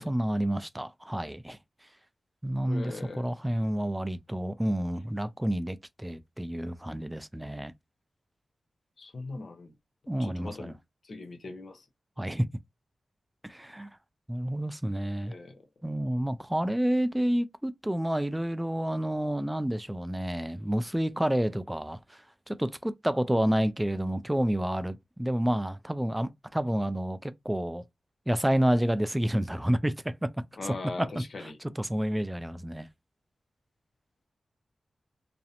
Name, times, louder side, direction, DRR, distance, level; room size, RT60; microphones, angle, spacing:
voice 1, 0.0-1.6 2.4-7.7 10.1-10.7 12.2-12.5 13.4-13.9 14.3-15.3 15.8-27.8 28.3-30.3 30.6-32.9, right 1 dB, 10° right, 0.3 m, -29 dB
voice 2, 2.7-3.3 9.0-9.7 10.2-10.7 11.0-11.8 15.3-15.6 30.6-31.6, left 3 dB, 65° left, 0.7 m, -40 dB
2.4 x 2.0 x 2.7 m
cardioid pair, 45°, 0 cm